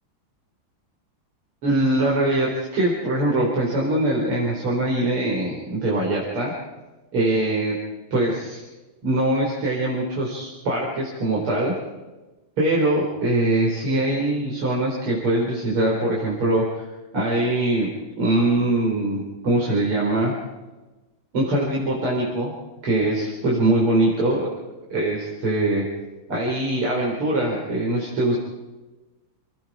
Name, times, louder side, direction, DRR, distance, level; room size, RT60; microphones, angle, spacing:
voice 1, 1.6-6.5 7.1-7.8 8.1-8.6 9.0-11.7 12.6-16.9 17.1-17.9 18.2-20.3 21.3-22.5 22.8-24.5 24.9-25.9 26.3-28.4, right 1 dB, 90° right, -4 dB, 5.4 m, -22 dB
29.5 x 19.0 x 4.9 m, 1.1 s
omnidirectional pair, 2.4 m